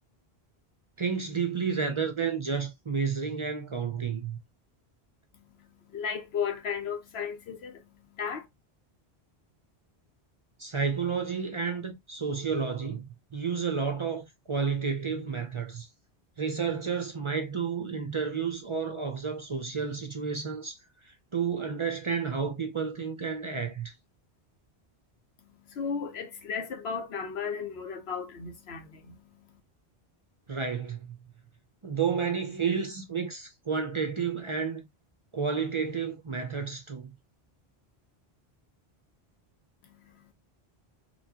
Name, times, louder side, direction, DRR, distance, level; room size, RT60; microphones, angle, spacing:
voice 1, 1.0-4.4 10.6-15.9 16.4-20.8 21.0-23.9 30.5-31.2 31.8-34.9 35.3-37.1, right 6 dB, 40° right, 0.5 m, -31 dB
voice 2, 5.6-8.5 25.5-29.5 39.8-40.3, left 6 dB, 75° left, 1.0 m, -35 dB
4.3 x 2.2 x 2.8 m
omnidirectional pair, 1.1 m